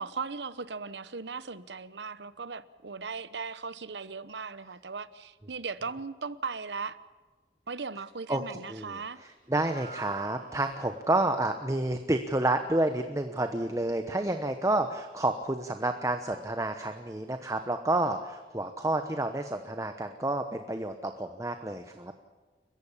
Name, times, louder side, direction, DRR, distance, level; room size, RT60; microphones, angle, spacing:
voice 1, 0.0-7.0 7.7-9.2, right 4 dB, 80° right, 15 dB, 1.0 m, -38 dB
voice 2, 8.7-22.1, right 2 dB, 20° right, 7 dB, 1.0 m, -30 dB
sound 1, 9.4-15.8, right 4 dB, 45° right, 2.8 m, -52 dB
30.0 x 15.0 x 7.3 m, 1.3 s
head